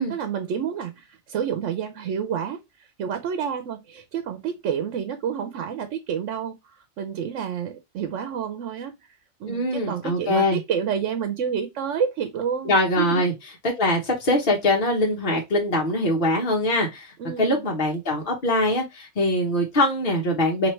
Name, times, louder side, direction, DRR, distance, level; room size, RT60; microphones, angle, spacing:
voice 1, 0.0-13.2 17.2-17.6, right 7 dB, 85° right, 1.0 m, -29 dB
voice 2, 9.5-10.6 12.7-13.3 13.8-20.7, left 1 dB, 50° left, 1.1 m, -23 dB
4.4 x 2.8 x 3.1 m
omnidirectional pair, 1.2 m